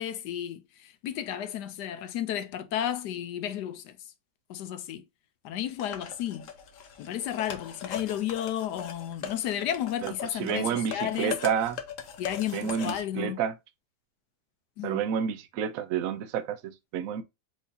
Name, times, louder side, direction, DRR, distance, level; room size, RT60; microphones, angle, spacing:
voice 1, 0.0-4.0 4.5-5.0 5.4-6.5 7.0-11.4 12.2-13.4 14.8-15.0, left 11 dB, 80° left, 1.2 m, -33 dB
sound 1, 5.8-13.0, left 8 dB, 60° left, 1.0 m, -40 dB
voice 2, 10.4-11.8 12.5-13.5 14.8-17.2, right 8 dB, 70° right, 0.9 m, -29 dB
4.6 x 2.7 x 4.0 m
omnidirectional pair, 1.8 m